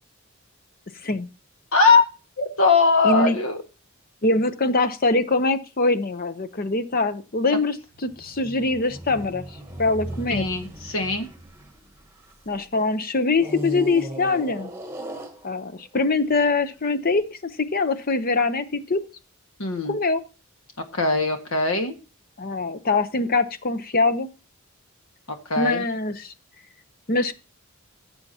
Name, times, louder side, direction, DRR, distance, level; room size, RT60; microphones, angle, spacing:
voice 1, 1.7-2.1 2.4-3.6 10.3-11.3 19.6-20.0 20.9-21.9 25.5-25.8, left 4 dB, 70° left, 5 dB, 1.8 m, -20 dB
voice 2, 3.0-3.4 4.2-7.8 8.0-9.4 9.8-10.5 12.5-14.7 15.4-19.0 19.8-20.2 22.4-24.3 25.6-26.3 27.1-27.3, left 3 dB, 40° left, 11 dB, 0.8 m, -23 dB
sound 1, 7.9-12.6 13.3-15.9 16.6-16.7, right 1 dB, 10° right, 1.3 m, -37 dB
16.0 x 7.2 x 2.9 m, 0.32 s
head